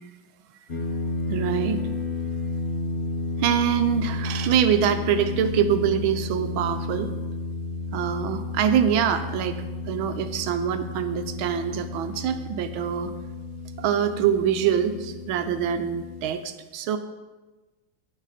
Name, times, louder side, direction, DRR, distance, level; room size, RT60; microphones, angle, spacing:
sound 1, 0.7-16.3, left 3 dB, 35° left, 0.9 m, -32 dB
voice 1, 1.3-1.8 3.4-7.1 7.9-13.1 13.8-17.0, right 8 dB, 85° right, 9 dB, 1.5 m, -24 dB
17.0 x 6.2 x 4.1 m, 1.2 s
omnidirectional pair, 2.2 m